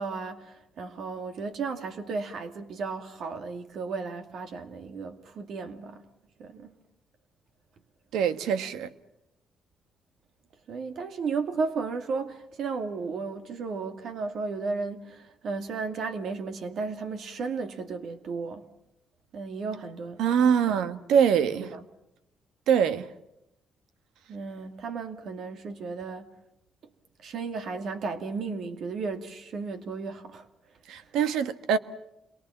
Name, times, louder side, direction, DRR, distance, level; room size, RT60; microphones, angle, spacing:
voice 1, 0.0-6.1 6.4-6.7 10.7-18.7 19.3-20.2 20.7-20.8 21.6-21.8 24.3-26.3 27.2-30.5 31.0-31.1, right 4 dB, 65° right, 2.3 m, -34 dB
voice 2, 8.1-8.9 20.2-21.7 22.7-23.1 30.9-31.8, right 7 dB, 85° right, 1.4 m, -24 dB
28.5 x 23.0 x 7.3 m
cardioid pair, 90°, 0 cm